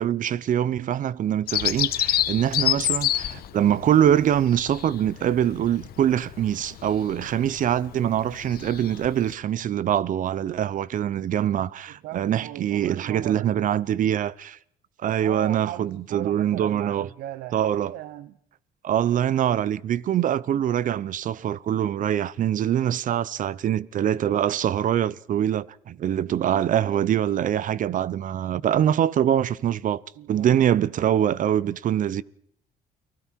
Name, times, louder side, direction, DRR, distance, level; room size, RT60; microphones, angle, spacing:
voice 1, 0.0-14.6 15.0-17.1 17.5-17.9 18.8-30.0 30.3-32.2, right 10 dB, 50° right, 0.8 m, -24 dB
Bird vocalization bird call bird song, 1.5-9.3, left 12 dB, 65° left, 1.3 m, -29 dB
voice 2, 11.9-13.7 15.2-18.4 30.2-30.5, right 13 dB, 80° right, 1.0 m, -38 dB
30.0 x 20.0 x 4.6 m
cardioid pair, 110°, 17 cm